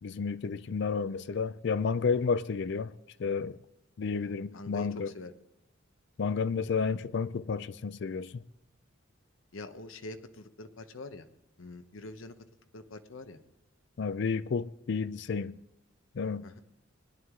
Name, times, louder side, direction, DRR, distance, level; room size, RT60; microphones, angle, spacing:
voice 1, 0.0-2.9 3.2-3.6 4.0-5.1 6.2-8.4 14.0-15.6 16.1-16.5, left 5 dB, 60° left, 0.4 m, -31 dB
voice 2, 4.0-5.3 9.5-11.3 11.6-12.4 12.7-13.4 16.4-16.6, left 2 dB, 85° left, 0.9 m, -45 dB
20.5 x 11.0 x 3.7 m
head